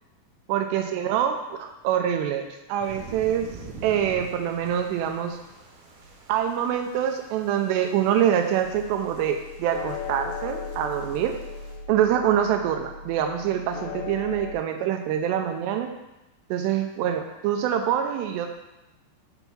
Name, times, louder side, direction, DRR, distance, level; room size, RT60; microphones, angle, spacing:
voice 1, 0.5-3.5 3.8-5.4 6.3-11.4 11.9-15.9 16.5-18.5, right 9 dB, 85° right, 5 dB, 2.7 m, -25 dB
sound 1, 2.8-11.8, right 3 dB, 70° right, 2.9 m, -46 dB
sound 2, 8.6-14.5, left 5 dB, 80° left, 2.6 m, -37 dB
7.0 x 5.4 x 6.0 m, 0.99 s
omnidirectional pair, 4.9 m